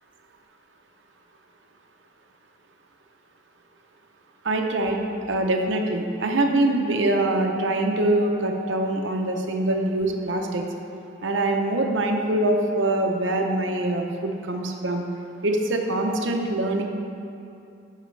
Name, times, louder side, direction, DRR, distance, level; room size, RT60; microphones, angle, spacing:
voice 1, 4.4-5.0 5.3-10.6 11.2-15.0 15.4-16.8, right 2 dB, 75° right, 3 dB, 0.9 m, -24 dB
14.0 x 6.6 x 3.3 m, 2.6 s
head